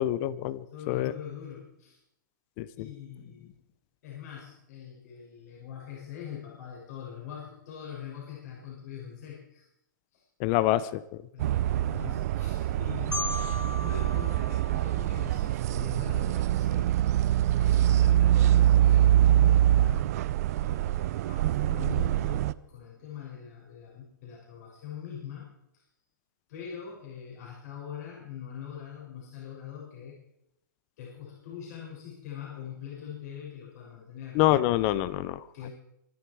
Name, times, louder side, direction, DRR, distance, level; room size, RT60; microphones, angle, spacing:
voice 1, 0.0-1.1 2.6-2.7 10.4-11.0 34.3-35.4, left 15 dB, 35° left, 17 dB, 0.9 m, -26 dB
voice 2, 0.7-2.0 2.7-3.5 4.0-9.6 10.1-10.2 11.3-13.3 13.8-17.0 17.6-20.1 20.6-25.5 26.5-30.2 31.0-34.4 35.5-35.7, left 8 dB, 55° left, -3 dB, 6.6 m, -43 dB
sound 1, 11.4-22.5, right 12 dB, 50° right, 0.6 m, -24 dB
Marimba xylophone, 13.1-16.0, left 3 dB, 10° left, 2.6 m, -38 dB
25.0 x 11.0 x 4.8 m, 0.82 s
hypercardioid pair, 130°, 11 cm